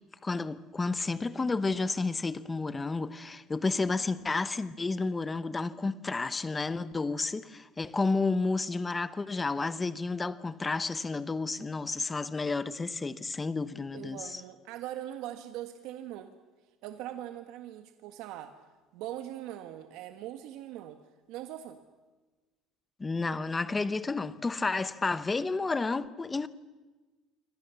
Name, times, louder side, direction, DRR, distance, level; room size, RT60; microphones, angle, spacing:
voice 1, 0.2-14.4 23.0-26.5, left 3 dB, 15° left, 0.8 m, -31 dB
voice 2, 13.9-16.3 16.8-18.5 18.9-21.0 21.3-21.8, right 12 dB, 70° right, 1.5 m, -41 dB
27.0 x 25.0 x 7.0 m
cardioid pair, 170°, 0 cm